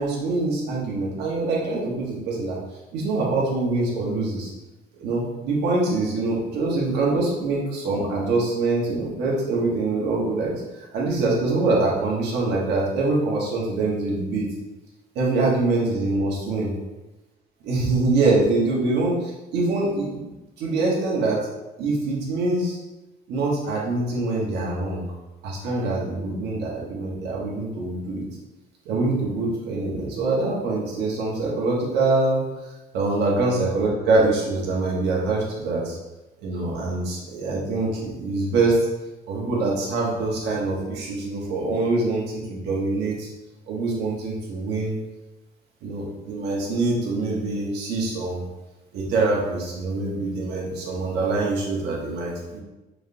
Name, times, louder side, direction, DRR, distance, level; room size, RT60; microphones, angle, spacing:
voice 1, 0.0-2.6 2.9-4.5 5.0-10.6 10.9-14.5 15.1-16.7 17.6-21.4 21.8-22.8 23.3-25.0 25.4-28.2 28.8-32.4 32.9-36.0 36.4-38.8 39.3-43.3 43.7-44.9 45.8-48.4 48.9-52.6, right 3 dB, 80° right, -4 dB, 1.4 m, -24 dB
4.8 x 3.4 x 2.8 m, 1.1 s
cardioid pair, 110°, 17 cm